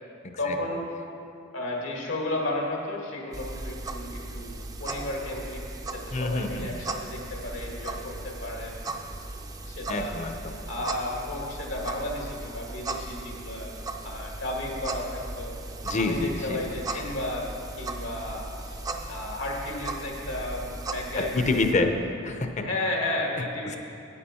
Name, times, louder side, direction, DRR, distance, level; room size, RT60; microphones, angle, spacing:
voice 1, 0.4-0.9 1.5-5.6 5.9-8.7 9.6-10.1 10.7-13.7 14.0-15.6 16.0-21.5 21.8-22.0 22.6-23.8, left 1 dB, 80° left, -1 dB, 1.9 m, -33 dB
sound 1, 3.3-21.7, right 2 dB, 20° right, 0.5 m, -37 dB
voice 2, 6.1-6.8 9.9-10.5 15.8-16.3 16.9-17.0 21.2-21.9 22.2-22.6, left 3 dB, 35° left, 6 dB, 0.7 m, -27 dB
10.0 x 8.8 x 4.3 m, 2.5 s
head